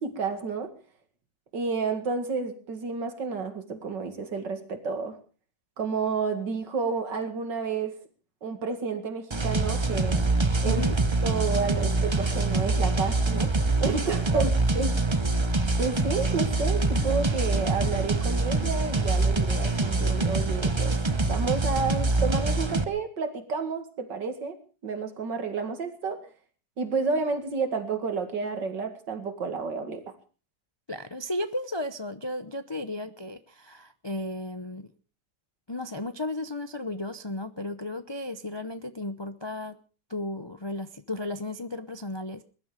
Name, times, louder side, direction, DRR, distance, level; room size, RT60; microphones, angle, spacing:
voice 1, 0.0-0.7 1.5-5.2 5.8-8.0 8.4-10.2 10.6-10.8 11.2-13.5 13.8-14.9 15.8-20.9 21.3-24.6 24.8-26.2 26.8-30.0, right 4 dB, 80° right, 7 dB, 2.8 m, -30 dB
sound 1, 9.3-22.8, right 2 dB, 25° right, 0.7 m, -25 dB
voice 2, 30.9-34.9 35.7-39.8 40.1-42.4, left 1 dB, 40° left, 10 dB, 0.4 m, -34 dB
21.0 x 12.0 x 5.0 m, 0.38 s
omnidirectional pair, 1.9 m